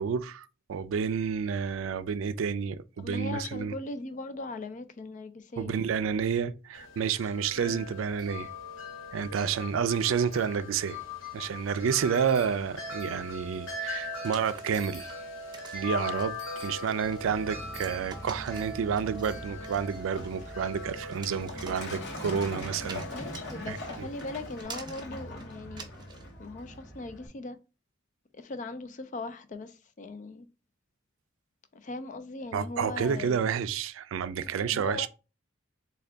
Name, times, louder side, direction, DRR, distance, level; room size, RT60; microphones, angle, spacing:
voice 1, 0.0-3.7 5.6-8.5 9.1-11.0 11.3-15.1 15.7-23.1 23.7-24.1 32.5-35.1, right 7 dB, 80° right, 0.3 m, -30 dB
voice 2, 3.0-5.7 7.6-7.8 23.1-27.6 28.3-30.5 31.7-33.4 34.6-35.1, left 2 dB, 40° left, 0.4 m, -39 dB
Wind chime, 6.7-24.6, left 2 dB, 85° left, 1.2 m, -41 dB
sound 1, 14.2-26.3, right 4 dB, 25° right, 0.6 m, -48 dB
Truck, 17.0-27.3, left 1 dB, 60° left, 0.9 m, -42 dB
3.7 x 2.3 x 3.3 m
head